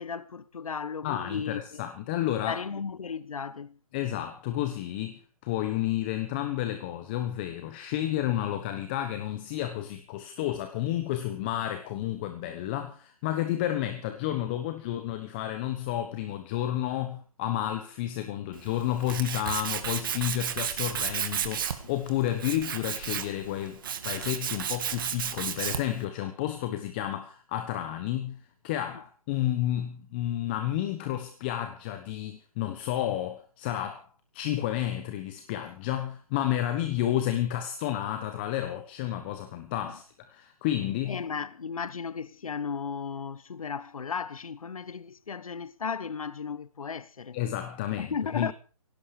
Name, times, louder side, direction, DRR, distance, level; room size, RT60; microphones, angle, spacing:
voice 1, 0.0-1.8 2.5-3.8 39.9-40.0 41.1-47.4 48.0-48.5, left 6 dB, 65° left, 1.2 m, -35 dB
voice 2, 1.0-2.6 3.9-34.1 34.3-41.2 47.3-48.5, left 12 dB, 15° left, 1.0 m, -31 dB
Tools, 18.5-26.0, right 8 dB, 35° right, 2.0 m, -33 dB
17.5 x 17.0 x 4.9 m
hypercardioid pair, 160°, 19 cm